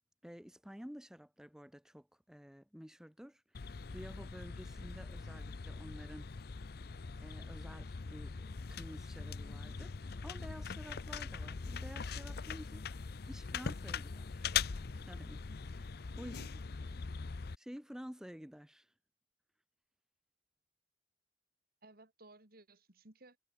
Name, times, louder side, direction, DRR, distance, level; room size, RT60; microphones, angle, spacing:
voice 1, 0.2-6.3 7.2-15.4 15.7-16.4 17.3-18.9, equal, 5° right, 0.8 m, -51 dB
sound 1, 3.5-17.6, left 5 dB, 60° left, 0.6 m, -42 dB
voice 2, 21.8-23.4, right 2 dB, 60° right, 3.5 m, -59 dB
head